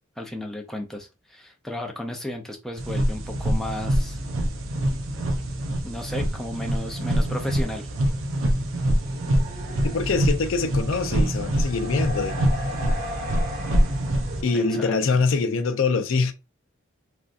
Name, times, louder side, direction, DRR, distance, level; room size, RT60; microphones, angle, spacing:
voice 1, 0.2-4.2 5.8-7.9 14.5-15.2, left 1 dB, ahead, 0.5 m, -34 dB
sound 1, 2.8-14.4, right 1 dB, 80° right, 0.6 m, -25 dB
sound 2, 6.7-8.4 8.8-14.8, left 1 dB, 40° right, 1.0 m, -39 dB
voice 2, 9.8-12.4 14.4-16.3, left 4 dB, 75° left, 0.5 m, -24 dB
3.4 x 2.6 x 2.4 m
head